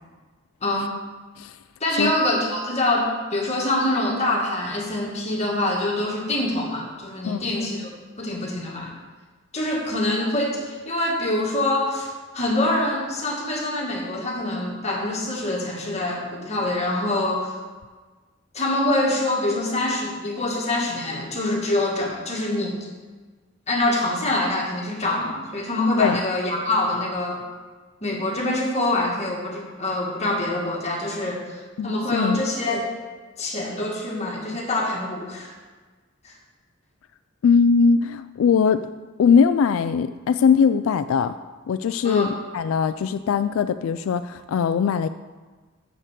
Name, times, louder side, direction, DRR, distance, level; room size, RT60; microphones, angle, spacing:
voice 1, 0.6-1.0 1.8-8.9 9.5-17.5 18.5-22.9 23.7-27.4 28.0-32.9 33.4-35.5 36.2-36.3 42.0-42.4, left 1 dB, 35° left, -2 dB, 1.8 m, -25 dB
voice 2, 31.8-32.4 37.4-38.9 39.2-41.4 41.7-45.1, left 6 dB, 85° left, 12 dB, 0.3 m, -20 dB
6.7 x 6.5 x 7.5 m, 1.4 s
head